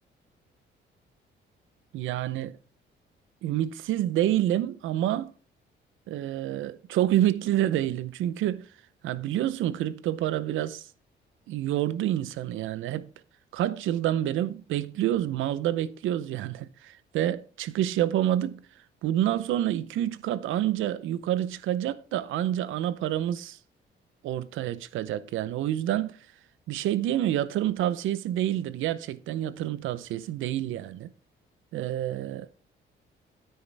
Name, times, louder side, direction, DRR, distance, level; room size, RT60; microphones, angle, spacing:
voice 1, 1.9-2.6 3.4-5.3 6.1-8.7 9.0-10.9 11.5-13.1 13.5-18.6 19.0-23.6 24.2-26.2 26.7-31.1 31.7-32.5, right 12 dB, 85° right, 0.7 m, -28 dB
9.7 x 9.4 x 3.4 m
cardioid pair, 90°, 20 cm